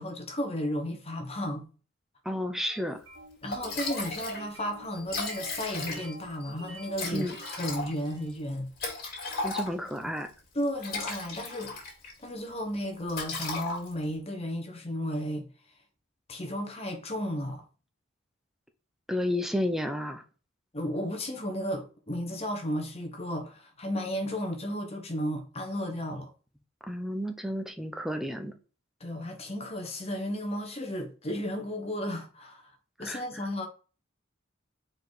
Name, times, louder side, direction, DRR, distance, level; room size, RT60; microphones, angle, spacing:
voice 1, 0.0-1.7 3.4-8.7 10.0-10.1 10.5-11.8 12.2-15.5 16.3-17.6 20.7-26.3 29.0-32.7 33.0-33.7, equal, 30° left, 1.3 m, -34 dB
voice 2, 2.2-3.0 7.1-7.3 9.4-10.3 19.1-20.2 26.9-28.5 33.0-33.2, left 1 dB, ahead, 0.7 m, -31 dB
sound 1, 2.7-8.4, right 1 dB, 70° right, 2.6 m, -49 dB
Liquid, 3.1-3.2 3.5-4.4 4.7-4.8 5.0-6.3 6.9-10.0 10.6-12.2 12.5-12.7 13.1-14.1, left 3 dB, 50° left, 2.8 m, -35 dB
4.9 x 4.8 x 4.0 m
head